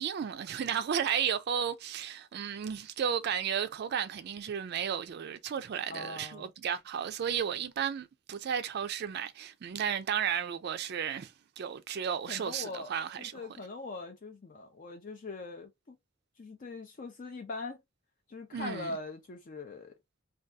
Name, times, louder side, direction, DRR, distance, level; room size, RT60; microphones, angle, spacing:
voice 1, 0.0-13.3 18.5-19.0, right 8 dB, 55° right, 0.3 m, -33 dB
voice 2, 5.9-6.5 12.3-12.9 13.2-16.0 16.4-17.8 18.3-19.9, left 3 dB, 45° left, 0.5 m, -41 dB
2.6 x 2.3 x 3.3 m
head